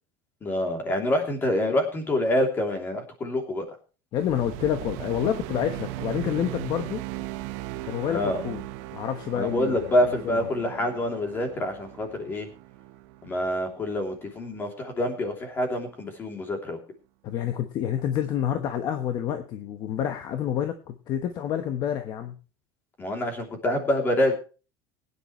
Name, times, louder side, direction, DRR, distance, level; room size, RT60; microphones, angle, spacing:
voice 1, 0.4-3.7 8.1-8.4 9.4-12.5 13.2-16.8 23.0-24.3, left 1 dB, 20° left, 4 dB, 3.0 m, -26 dB
voice 2, 4.1-7.0 7.8-8.6 8.9-9.8 10.2-10.4 17.2-22.3, left 9 dB, 40° left, 8 dB, 1.1 m, -28 dB
sound 1, 4.2-14.6, right 16 dB, 60° right, 1.0 m, -38 dB
21.0 x 9.9 x 3.1 m, 0.35 s
cardioid pair, 170°, 11 cm